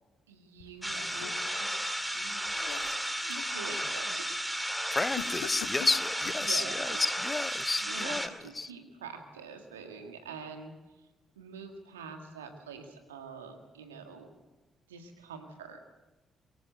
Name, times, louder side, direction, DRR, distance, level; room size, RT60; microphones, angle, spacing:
voice 1, 0.3-1.8 2.0-2.4 3.2-4.6 6.4-7.0 7.8-11.1 11.4-14.3 14.9-15.8, right 5 dB, 80° right, 5 dB, 1.9 m, -45 dB
sound 1, 0.6-1.7 2.2-3.6 4.0-4.3 5.1-6.5, left 12 dB, 65° left, 0.8 m, -44 dB
sound 2, 0.8-8.3, equal, 5° right, 2.1 m, -34 dB
voice 2, 4.9-8.2 8.6-8.7, left 3 dB, 25° left, 17 dB, 0.8 m, -31 dB
23.5 x 14.5 x 8.1 m, 1.1 s
figure-of-eight pair, 40°, 0 cm